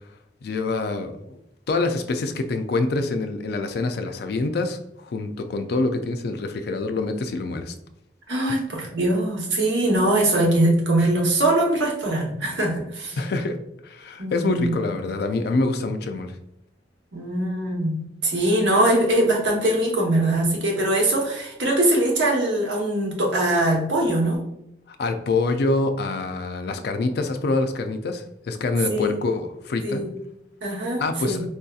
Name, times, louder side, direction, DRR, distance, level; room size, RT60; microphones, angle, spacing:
voice 1, 0.4-1.4 1.7-7.7 13.2-13.6 13.8-16.4 24.9-30.0 31.0-31.4, left 3 dB, 60° left, 7 dB, 0.4 m, -26 dB
voice 2, 8.3-13.2 14.2-14.7 17.1-24.4 28.9-29.2 29.8-30.1 30.6-31.4, right 1 dB, 80° right, -1 dB, 1.0 m, -22 dB
4.4 x 2.7 x 2.3 m, 0.80 s
head